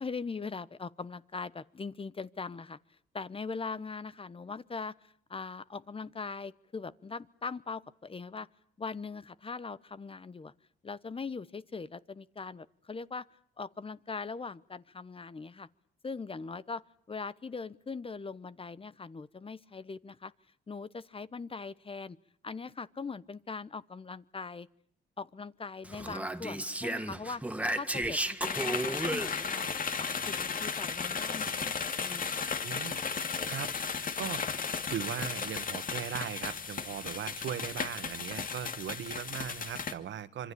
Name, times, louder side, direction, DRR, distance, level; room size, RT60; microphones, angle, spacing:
voice 1, 0.0-2.8 3.1-8.5 8.8-10.5 10.8-13.2 13.6-15.7 16.0-16.8 17.1-20.3 20.7-22.2 22.4-24.7 25.2-27.4 27.7-29.7 30.0-32.5, left 4 dB, 25° left, 16 dB, 1.1 m, -41 dB
Speech, 25.8-29.7, right 1 dB, 5° right, 1.7 m, -34 dB
sound 1, 28.4-39.9, left 5 dB, 45° left, 2.4 m, -35 dB
voice 2, 32.6-33.0 33.5-40.5, right 9 dB, 70° right, 12 dB, 1.9 m, -39 dB
26.0 x 25.0 x 8.6 m, 0.65 s
cardioid pair, 90°, 20 cm